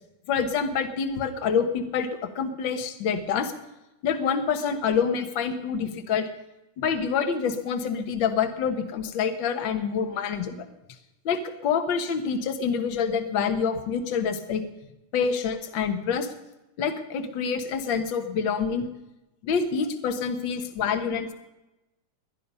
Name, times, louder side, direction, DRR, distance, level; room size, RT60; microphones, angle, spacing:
voice 1, 0.3-3.5 4.0-6.3 6.8-10.6 11.2-14.6 15.1-16.3 16.8-18.9 19.4-21.3, left 6 dB, 50° left, 7 dB, 1.5 m, -27 dB
21.5 x 10.5 x 5.5 m, 0.98 s
omnidirectional pair, 3.6 m